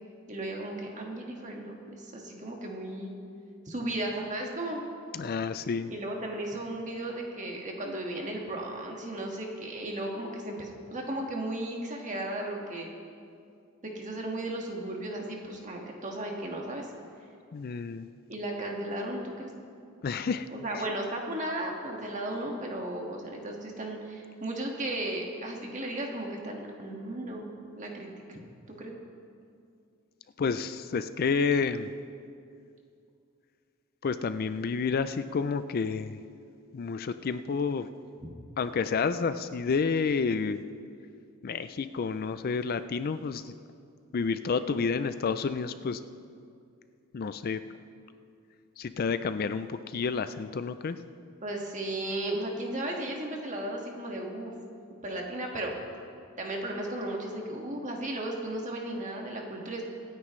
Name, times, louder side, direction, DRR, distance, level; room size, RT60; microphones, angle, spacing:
voice 1, 0.3-3.1 3.6-4.8 5.9-12.9 13.9-16.9 18.3-19.5 20.5-27.5 27.8-28.4 28.7-28.9 38.2-38.3 51.4-54.5 55.0-55.7 56.4-59.8, right 1 dB, 35° right, 0 dB, 1.8 m, -35 dB
voice 2, 5.1-5.9 17.5-18.1 20.0-20.5 20.7-20.8 30.4-31.9 34.0-36.2 36.7-37.9 38.6-40.6 41.4-43.5 44.1-46.0 47.1-47.6 48.8-51.0, left 5 dB, 45° left, 12 dB, 0.4 m, -30 dB
25.5 x 9.6 x 3.2 m, 2.4 s
head